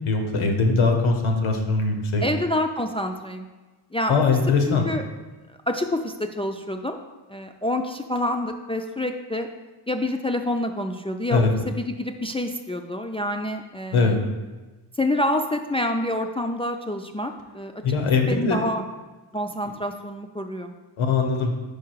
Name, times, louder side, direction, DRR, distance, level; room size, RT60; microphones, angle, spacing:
voice 1, 0.0-2.2 4.1-4.9 11.3-11.5 13.9-14.2 17.8-18.6 21.0-21.5, left 4 dB, 85° left, 4 dB, 1.1 m, -21 dB
voice 2, 2.2-3.5 3.9-4.2 4.7-5.0 5.7-7.0 7.3-9.5 9.9-14.2 15.0-17.8 18.2-18.8 19.3-20.7, left 1 dB, 15° left, 4 dB, 0.3 m, -27 dB
4.8 x 4.8 x 4.6 m, 1.2 s
cardioid pair, 65°, 48 cm